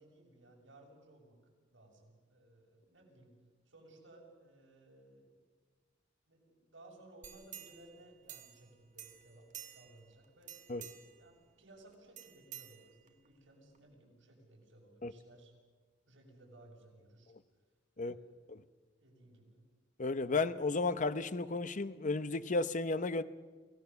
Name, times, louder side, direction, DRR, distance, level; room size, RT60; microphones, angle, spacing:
voice 1, 0.0-1.4 1.7-3.3 3.7-5.4 6.3-15.5 16.1-17.3 17.9-18.6 19.0-19.6, right 1 dB, 75° right, 6.9 m, -60 dB
sound 1, 7.2-8.7 9.0-10.0 10.4-11.2 12.2-13.3 13.7-13.8, right 11 dB, 40° right, 1.7 m, -51 dB
voice 2, 20.0-23.2, left 3 dB, 40° left, 0.8 m, -33 dB
28.5 x 17.0 x 6.9 m
head